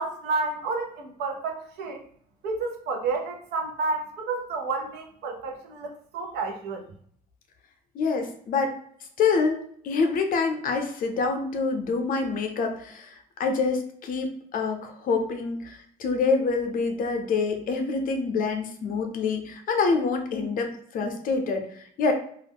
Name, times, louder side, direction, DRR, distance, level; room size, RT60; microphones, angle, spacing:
voice 1, 0.0-2.0 2.4-6.8, right 3 dB, 75° right, 2 dB, 0.6 m, -30 dB
voice 2, 7.9-8.8 9.2-9.6 9.8-22.1, left 4 dB, 55° left, 4 dB, 0.6 m, -26 dB
2.4 x 2.0 x 3.4 m, 0.62 s
cardioid pair, 110°, 17 cm